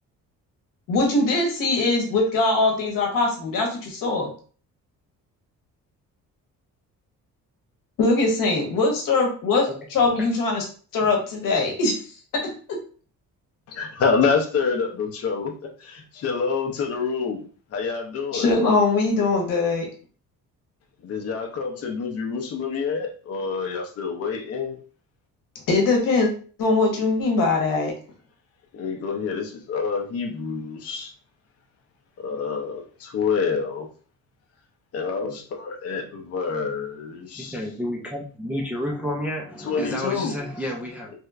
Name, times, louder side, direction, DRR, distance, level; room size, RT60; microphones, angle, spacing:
voice 1, 0.9-4.3 8.0-10.7 10.9-12.0 12.3-12.5 18.3-19.9 25.7-26.3 26.6-27.9, left 3 dB, 70° left, 1 dB, 1.1 m, -21 dB
voice 2, 13.7-17.4 17.7-18.6 21.0-24.8 28.7-31.1 32.2-33.9 34.9-37.6 39.6-40.3, left 5 dB, 45° left, 2 dB, 0.6 m, -27 dB
voice 3, 37.4-41.1, left 1 dB, 5° right, -1 dB, 0.3 m, -30 dB
3.3 x 2.9 x 2.4 m, 0.41 s
cardioid pair, 160°, 34 cm